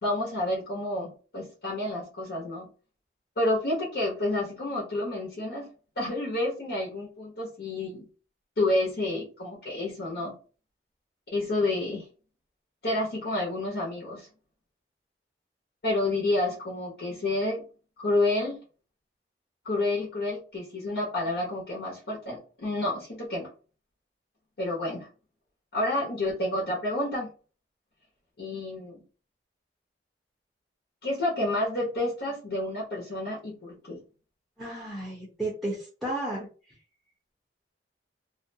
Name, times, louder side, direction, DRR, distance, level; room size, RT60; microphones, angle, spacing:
voice 1, 0.0-2.7 3.4-5.7 6.0-8.1 8.6-10.4 11.3-12.0 12.8-14.3 15.8-17.6 18.0-18.6 19.6-23.5 24.6-25.1 25.7-27.3 28.4-29.0 31.0-34.0, left 2 dB, 65° left, -4 dB, 0.9 m, -29 dB
voice 2, 34.6-36.5, right 1 dB, ahead, -4 dB, 0.6 m, -33 dB
2.5 x 2.2 x 2.6 m, 0.36 s
head